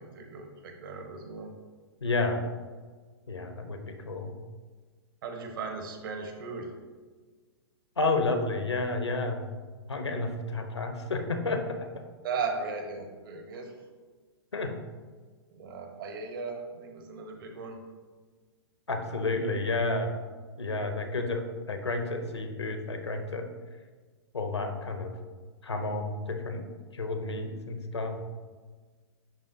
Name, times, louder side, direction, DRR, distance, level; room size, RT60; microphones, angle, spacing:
voice 1, 0.0-1.5 5.2-6.7 12.2-13.7 15.5-17.8, right 4 dB, 55° right, 4 dB, 1.1 m, -37 dB
voice 2, 2.0-2.4 3.3-4.4 8.0-9.5 9.9-11.9 14.5-14.7 18.9-20.1 20.6-23.5 24.3-25.1 25.6-26.6 26.9-28.2, left 2 dB, 80° left, 6 dB, 0.8 m, -31 dB
10.5 x 3.5 x 2.7 m, 1.4 s
figure-of-eight pair, 115°, 14 cm